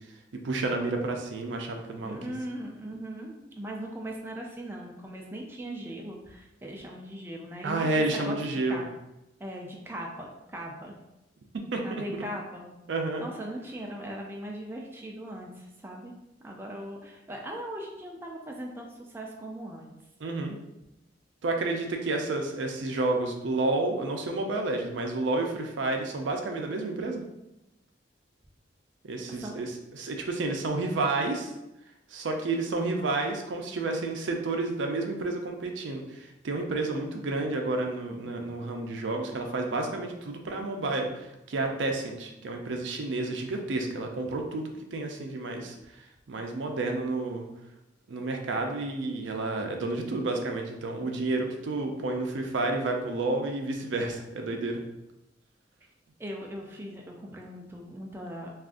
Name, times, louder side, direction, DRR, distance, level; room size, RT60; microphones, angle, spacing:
voice 1, 0.4-2.2 7.6-8.8 11.7-12.2 12.9-13.2 20.2-20.6 21.4-27.2 29.0-31.5 32.1-45.7 46.3-47.5 48.1-54.8, right 2 dB, 75° right, 3 dB, 0.5 m, -30 dB
voice 2, 2.0-8.8 9.4-11.0 11.8-12.7 13.2-16.1 16.4-19.9 29.3-29.6 56.2-58.5, right 1 dB, 10° right, 0 dB, 0.3 m, -39 dB
2.4 x 2.4 x 3.6 m, 0.93 s
head